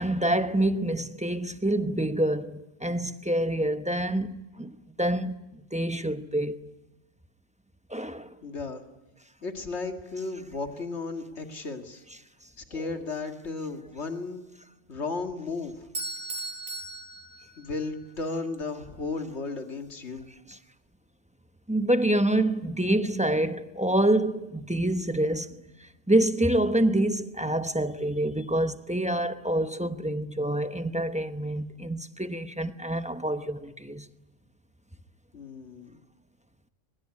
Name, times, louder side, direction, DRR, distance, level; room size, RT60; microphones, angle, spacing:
voice 1, 0.0-5.4 5.7-6.7 7.9-8.3 12.8-12.9 21.7-25.6 26.1-34.1, right 1 dB, 5° right, 0.8 m, -27 dB
voice 2, 8.4-8.8 9.4-12.0 12.6-14.4 14.9-15.9 17.6-20.3 35.3-36.0, left 3 dB, 65° left, 2.4 m, -34 dB
Bell / Doorbell, 15.9-18.0, right 2 dB, 25° right, 5.3 m, -37 dB
22.5 x 20.5 x 9.7 m
omnidirectional pair, 1.2 m